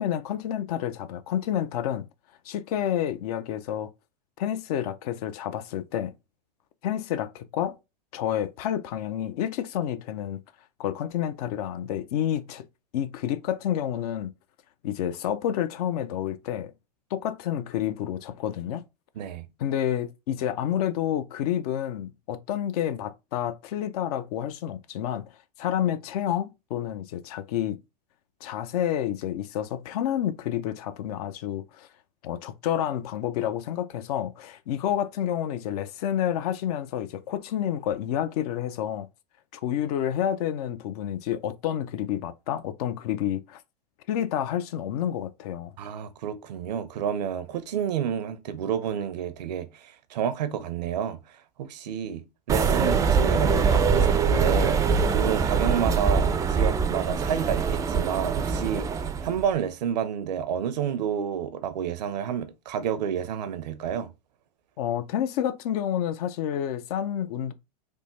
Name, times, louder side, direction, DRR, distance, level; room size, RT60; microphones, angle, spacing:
voice 1, 0.0-2.1 2.4-3.9 4.4-6.1 6.8-7.8 8.1-10.4 10.8-12.6 12.9-14.3 14.8-16.7 17.1-18.8 19.6-25.2 25.6-27.8 28.4-31.9 32.2-39.1 39.5-43.6 44.1-45.7 64.8-67.5, left 10 dB, 65° left, 0.5 m, -29 dB
voice 2, 19.2-19.5 45.8-51.2 51.6-54.8 55.1-58.9 59.2-64.1, right 8 dB, 75° right, 0.6 m, -30 dB
sound 1, 52.5-59.4, right 5 dB, 15° right, 0.3 m, -23 dB
3.4 x 2.1 x 3.0 m
hypercardioid pair, 105°, 21 cm